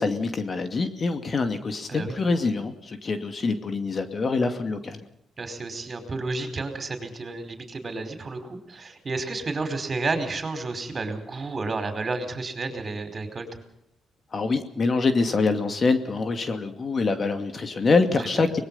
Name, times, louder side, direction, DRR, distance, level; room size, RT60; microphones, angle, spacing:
voice 1, 0.0-5.0 14.3-18.6, left 4 dB, 40° left, 8 dB, 2.4 m, -25 dB
voice 2, 5.4-13.5 18.3-18.5, right 3 dB, 35° right, 9 dB, 4.9 m, -31 dB
24.0 x 20.5 x 5.6 m, 0.78 s
cardioid pair, 90°, 0 cm